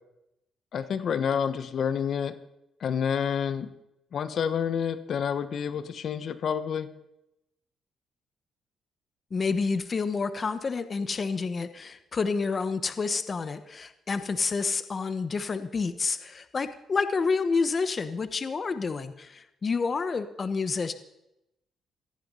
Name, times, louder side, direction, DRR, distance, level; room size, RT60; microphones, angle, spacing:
voice 1, 0.7-2.3 2.8-3.7 4.1-6.9, left 7 dB, 60° left, 12 dB, 1.1 m, -28 dB
voice 2, 9.3-20.9, left 4 dB, 35° left, 11 dB, 1.1 m, -29 dB
18.0 x 14.0 x 5.6 m, 0.86 s
cardioid pair, 90°, 0 cm